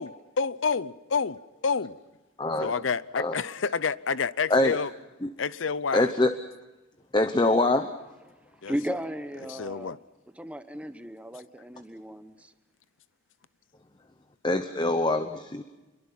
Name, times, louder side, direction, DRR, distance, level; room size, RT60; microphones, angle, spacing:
voice 1, 0.0-2.0 2.6-4.9 5.4-6.1 8.6-8.7 9.5-10.0, left 5 dB, 80° left, 0.7 m, -29 dB
voice 2, 2.4-2.7 3.2-3.3 4.5-4.8 5.2-5.3 5.9-6.3 7.1-7.9 14.4-15.6, left 2 dB, 25° left, 0.9 m, -24 dB
voice 3, 8.7-10.0 10.4-12.5, equal, 5° right, 0.9 m, -35 dB
26.5 x 22.5 x 5.7 m
head